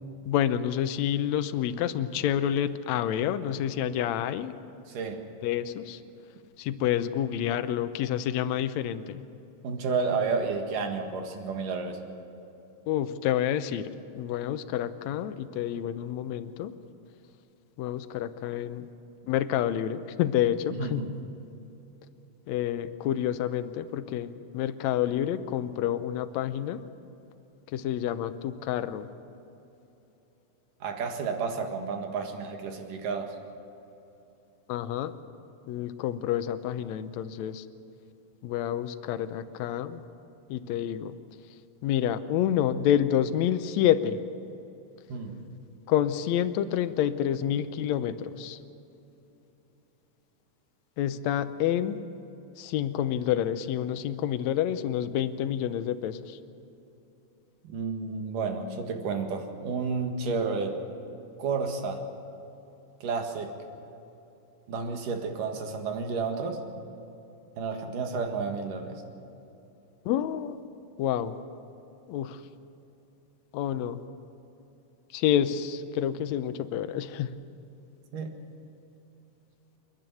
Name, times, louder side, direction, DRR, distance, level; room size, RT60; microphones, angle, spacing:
voice 1, 0.3-4.5 5.4-6.0 6.6-9.2 12.9-16.7 17.8-18.9 19.3-21.0 22.5-26.8 27.7-29.1 34.7-35.2 35.7-37.7 38.4-40.0 40.5-41.2 41.8-44.2 45.9-48.6 51.0-52.0 52.6-56.4 70.1-70.6 71.0-71.4 72.1-72.4 73.5-74.0 75.1-77.3, left 10 dB, 75° left, 11 dB, 1.8 m, -28 dB
voice 2, 4.9-5.2 9.6-12.0 20.7-21.1 30.8-33.4 45.1-45.4 57.6-60.8 61.4-62.0 63.0-63.6 64.7-66.6 67.6-69.0 78.1-78.3, right 4 dB, 75° right, 4 dB, 3.3 m, -31 dB
28.5 x 11.0 x 9.2 m, 2.9 s
omnidirectional pair, 3.9 m